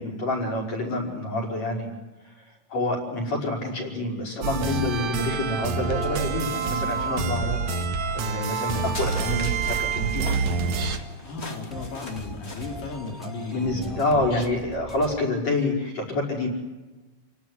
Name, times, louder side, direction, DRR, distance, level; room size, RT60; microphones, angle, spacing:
voice 1, 0.0-1.9 2.7-7.6 8.1-10.4 13.5-16.5, left 2 dB, 55° left, 0 dB, 6.7 m, -27 dB
sound 1, 4.4-11.0, right 5 dB, 65° right, 2.7 m, -27 dB
sound 2, 5.7-15.3, equal, ahead, 3.4 m, -42 dB
sound 3, 8.7-13.7, left 2 dB, 20° left, 2.3 m, -41 dB
voice 2, 11.2-14.6, left 3 dB, 90° left, 2 dB, 5.6 m, -35 dB
29.5 x 18.5 x 10.0 m, 1.2 s
omnidirectional pair, 3.7 m